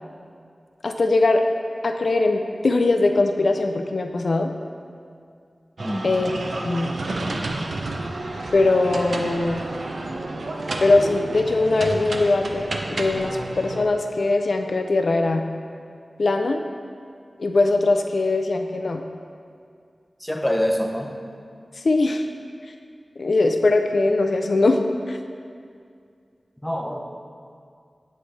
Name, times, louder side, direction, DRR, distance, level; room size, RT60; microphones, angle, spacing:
voice 1, 0.8-1.4 1.8-4.5 6.0-6.9 8.5-9.6 10.8-15.4 16.2-16.6 17.4-19.0 21.8-22.3 23.2-25.2, left 2 dB, 70° left, 5 dB, 0.3 m, -21 dB
voice 2, 5.8-6.1 20.2-21.2 26.6-27.0, equal, 5° left, 2 dB, 0.5 m, -25 dB
sound 1, 5.8-13.9, right 2 dB, 80° right, 0.5 m, -30 dB
8.9 x 3.2 x 4.0 m, 2.3 s
wide cardioid pair, 90°, 0 cm